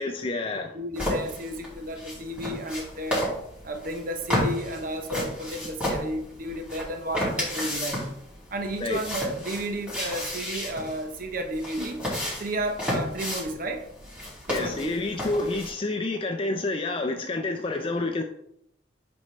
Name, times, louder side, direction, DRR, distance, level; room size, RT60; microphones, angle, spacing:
voice 1, 0.0-0.7 8.8-9.0 14.5-18.2, left 2 dB, 30° left, 0.5 m, -28 dB
voice 2, 0.7-3.3 3.6-8.1 8.5-12.0 12.4-13.8 14.5-14.9, right 1 dB, 50° right, 0.8 m, -32 dB
sound 1, 0.9-15.7, equal, 5° right, 2.7 m, -33 dB
8.1 x 5.3 x 3.2 m
head